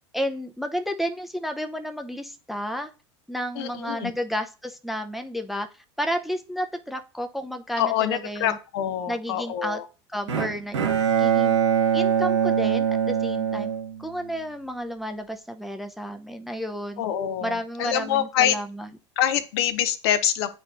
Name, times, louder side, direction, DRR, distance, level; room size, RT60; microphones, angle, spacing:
voice 1, 0.1-2.9 3.3-5.7 6.0-8.6 9.1-9.8 10.1-10.8 11.1-11.6 11.9-13.7 14.0-17.0 17.4-18.9, equal, ahead, 5 dB, 0.6 m, -31 dB
voice 2, 3.6-4.1 7.8-9.8 17.0-18.6 19.2-20.5, left 10 dB, 60° left, 12 dB, 0.8 m, -25 dB
Bowed string instrument, 10.3-14.5, right 8 dB, 75° right, 1.0 m, -23 dB
9.5 x 4.3 x 2.5 m, 0.33 s
figure-of-eight pair, 75°, 15 cm